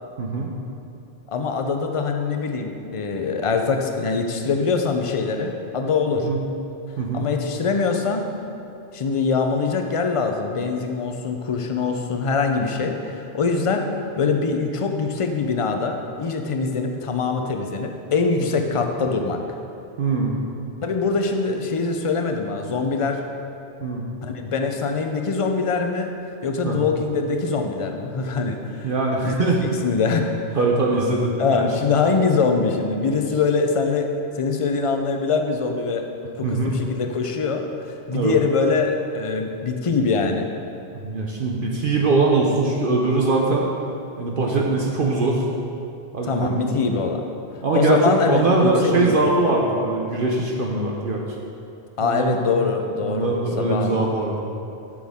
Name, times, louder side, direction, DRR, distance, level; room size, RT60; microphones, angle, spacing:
voice 1, 0.2-0.5 6.1-6.4 7.0-7.3 20.0-20.4 23.8-24.0 26.6-26.8 28.8-29.7 30.5-31.7 36.4-36.9 38.1-38.3 40.9-43.7 44.2-45.4 46.1-46.7 47.6-51.2 52.0-52.5 53.0-54.5, right 3 dB, 55° right, -1 dB, 0.9 m, -22 dB
voice 2, 1.3-6.3 7.1-8.3 8.9-13.9 14.2-19.4 20.8-23.2 24.2-26.1 26.4-28.9 29.2-29.3 29.6-30.3 31.4-34.1 34.4-36.1 36.4-37.6 38.1-40.5 46.3-47.3 47.7-49.2 52.0-54.0, left 4 dB, 35° left, 4 dB, 0.6 m, -23 dB
11.5 x 6.2 x 3.6 m, 2.7 s
omnidirectional pair, 1.2 m